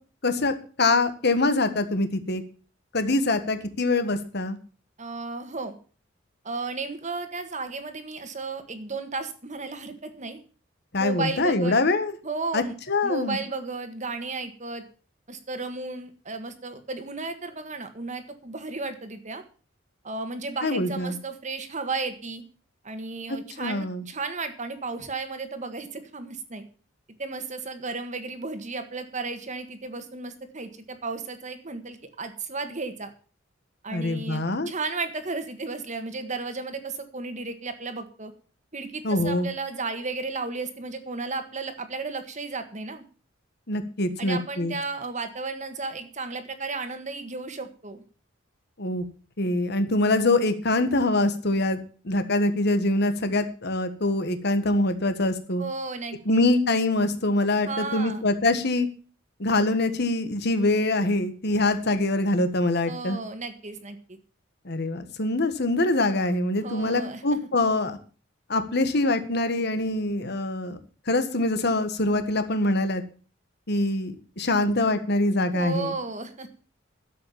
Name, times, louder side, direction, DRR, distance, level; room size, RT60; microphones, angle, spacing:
voice 1, 0.2-2.4 2.9-4.6 10.9-12.1 12.5-13.4 20.6-21.1 23.6-24.0 33.9-34.7 39.0-39.5 43.7-44.7 48.8-49.0 49.4-55.6 56.2-58.9 59.4-63.2 64.6-68.0 68.5-70.8 71.1-73.0 73.7-75.9, left 2 dB, 60° left, 10 dB, 1.6 m, -24 dB
voice 2, 5.0-5.7 6.4-10.4 11.0-11.8 12.2-12.7 13.0-14.8 15.3-19.4 20.0-22.4 22.8-26.6 27.2-33.1 33.8-38.3 38.7-43.0 44.2-48.0 55.6-56.4 57.6-58.2 62.8-64.2 66.6-67.5 75.5-76.5, right 3 dB, 40° right, 8 dB, 1.7 m, -34 dB
11.5 x 7.6 x 7.2 m, 0.39 s
head